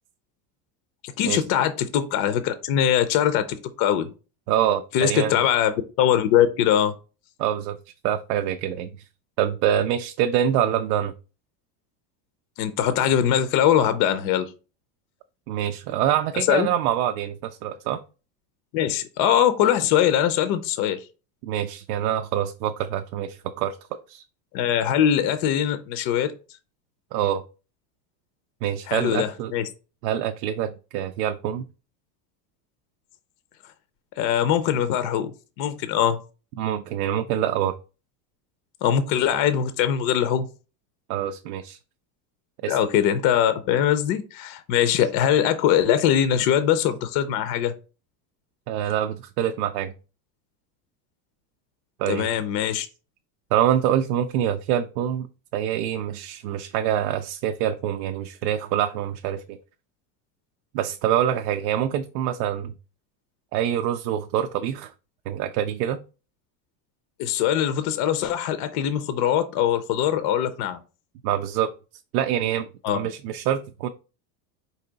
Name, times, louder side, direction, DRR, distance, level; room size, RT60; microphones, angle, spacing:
voice 1, 1.0-3.4 3.8-4.1 4.9-6.9 12.6-14.5 16.3-16.7 18.7-21.0 24.5-26.3 28.9-29.7 34.2-35.3 35.6-36.2 38.8-40.5 42.7-47.7 52.1-52.9 67.2-70.8 72.8-73.1, left 10 dB, 45° left, 11 dB, 0.5 m, -22 dB
voice 2, 4.5-5.4 7.4-7.8 8.0-8.9 9.4-11.1 15.5-18.0 21.4-23.8 24.1-24.2 27.1-27.4 28.6-29.5 30.0-31.6 36.6-37.7 41.1-41.8 42.6-42.8 48.7-49.9 52.0-52.3 53.5-55.3 55.5-59.6 60.7-62.7 63.5-64.9 65.3-66.0 71.2-71.7 72.1-72.7 72.9-73.9, right 10 dB, 85° right, 6 dB, 0.6 m, -25 dB
4.6 x 2.8 x 3.8 m, 0.33 s
cardioid pair, 165°, 46 cm